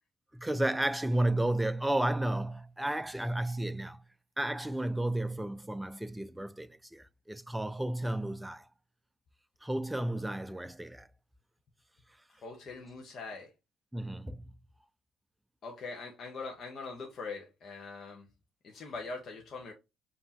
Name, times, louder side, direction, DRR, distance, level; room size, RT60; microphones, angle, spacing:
voice 1, 0.3-4.0 4.4-8.7 9.6-11.1 13.9-14.5, right 1 dB, 5° right, 0.4 m, -32 dB
voice 2, 12.4-13.5 15.6-18.3 18.6-19.7, left 4 dB, 55° left, 1.0 m, -42 dB
5.3 x 2.8 x 2.8 m
supercardioid pair, 70°, 0 cm